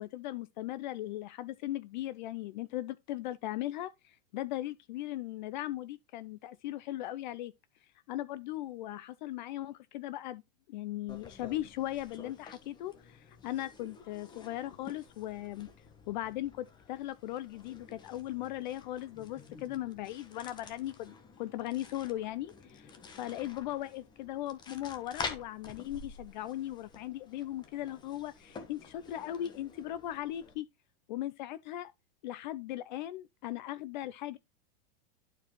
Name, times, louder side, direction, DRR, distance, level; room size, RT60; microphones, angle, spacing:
voice 1, 0.0-7.5 7.8-10.4 10.7-15.7 16.1-30.7 31.1-31.9 32.2-34.4, left 14 dB, 50° left, 0.5 m, -38 dB
sound 1, 11.1-30.5, left 4 dB, 15° left, 1.0 m, -49 dB
11.5 x 4.7 x 3.0 m
supercardioid pair, 155°, 30 cm